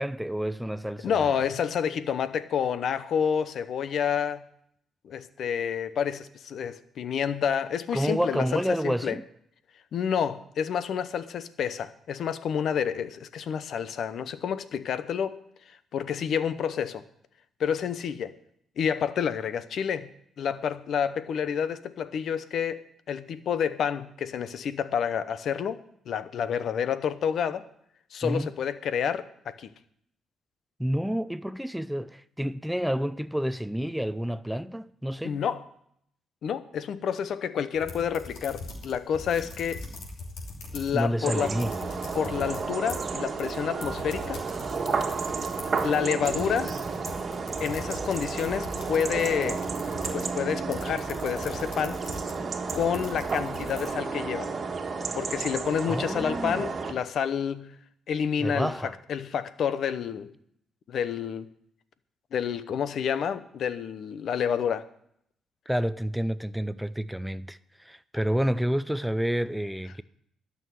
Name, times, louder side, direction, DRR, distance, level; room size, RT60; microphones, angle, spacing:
voice 1, 0.0-1.4 7.9-9.2 28.2-28.5 30.8-35.4 40.9-41.8 55.9-56.7 58.4-59.0 65.7-70.0, equal, 5° right, 0.5 m, -29 dB
voice 2, 1.0-4.4 5.0-9.2 9.9-15.4 15.9-17.0 17.6-18.3 18.8-20.1 20.4-27.6 28.1-29.7 35.2-35.6 36.4-39.8 40.7-41.6 42.1-44.4 45.8-46.7 47.6-49.6 50.1-52.0 52.7-54.5 55.1-57.8 58.1-60.3 60.9-61.5 62.3-64.9, left 7 dB, 65° left, 0.9 m, -29 dB
sound 1, 37.7-41.1 41.4-53.9, left 2 dB, 85° left, 3.0 m, -42 dB
sound 2, 41.2-56.9, right 4 dB, 40° right, 1.6 m, -32 dB
12.5 x 6.5 x 9.3 m
cardioid pair, 90°, 0 cm